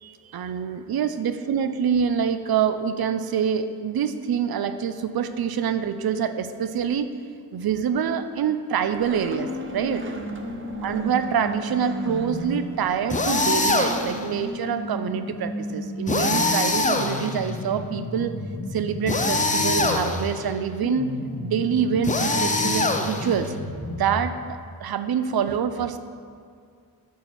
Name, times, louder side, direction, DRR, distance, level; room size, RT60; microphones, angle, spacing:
voice 1, 0.0-7.1 7.5-10.1 10.8-18.4 18.7-21.1 21.4-23.5 24.0-26.0, right 7 dB, 75° right, 10 dB, 0.6 m, -26 dB
Skateboard, 8.9-14.5, right 2 dB, 35° right, 0.9 m, -41 dB
sound 1, 9.3-12.6 13.3-20.3 20.8-24.3, left 1 dB, 45° left, 1.5 m, -33 dB
sound 2, 13.1-14.2 16.1-17.5 19.1-20.4 22.0-23.5, left 2 dB, 20° left, 0.6 m, -23 dB
11.0 x 4.5 x 6.8 m, 2.2 s
wide cardioid pair, 120°, 37 cm